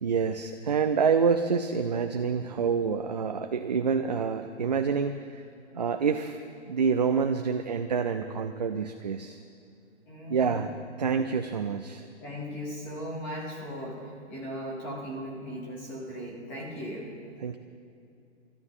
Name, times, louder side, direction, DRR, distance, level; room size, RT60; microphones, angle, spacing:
voice 1, 0.0-5.4 5.7-6.4 6.7-9.4 10.3-10.7 11.0-12.1 17.4-17.6, right 6 dB, 40° right, 7 dB, 0.4 m, -27 dB
voice 2, 10.1-10.7 12.2-17.1, equal, 5° left, -2 dB, 0.7 m, -38 dB
27.5 x 13.0 x 3.7 m, 2.5 s
hypercardioid pair, 170°, 34 cm